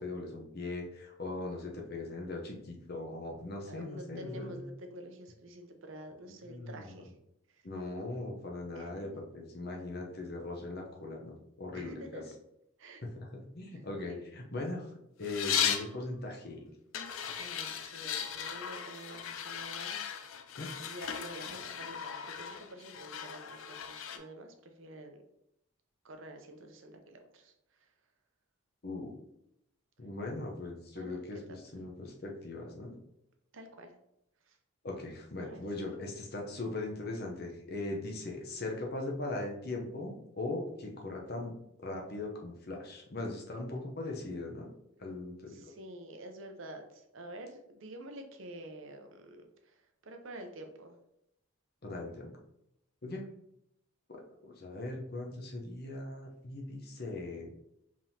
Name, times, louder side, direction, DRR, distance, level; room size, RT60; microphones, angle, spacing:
voice 1, 0.0-4.6 6.3-7.0 7.6-12.2 13.0-14.9 15.2-16.7 20.6-20.7 28.8-29.1 30.0-33.0 34.8-41.5 41.8-44.7 45.0-45.7 51.8-52.3 53.0-53.2 54.1-57.5, left 2 dB, 45° left, 0 dB, 0.8 m, -40 dB
voice 2, 3.7-7.1 7.5-7.6 8.7-9.2 11.7-12.2 12.8-13.0 13.7-14.3 17.4-20.0 20.8-25.2 26.0-27.5 31.0-31.6 33.5-33.9 34.5-34.6 35.4-35.9 43.6-43.7 45.5-51.0, right 1 dB, 65° right, 5 dB, 0.7 m, -48 dB
sound 1, 15.2-15.9 16.9-24.2, left 8 dB, 70° left, 0.4 m, -37 dB
5.0 x 3.6 x 2.8 m, 0.80 s
head